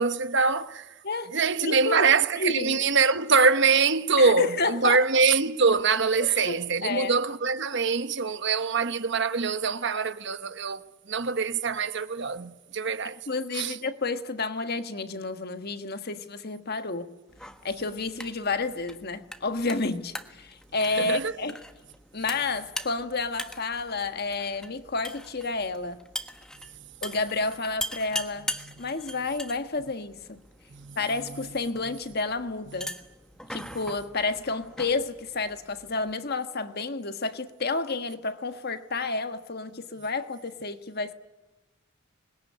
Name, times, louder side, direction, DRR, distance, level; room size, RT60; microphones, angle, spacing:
voice 1, 0.0-0.9 1.3-10.8 11.1-13.2 13.5-13.8 21.0-21.3 30.7-31.0, right 4 dB, 60° right, 1.2 m, -24 dB
voice 2, 1.0-2.1 2.4-2.8 4.2-5.0 6.2-7.1 13.3-17.1 17.6-21.6 22.1-26.1 27.0-28.5 28.8-30.4 31.0-33.0 33.5-41.1, left 3 dB, 50° left, 1.4 m, -30 dB
sound 1, 17.3-36.2, left 1 dB, 5° left, 1.3 m, -41 dB
26.5 x 21.5 x 9.8 m
head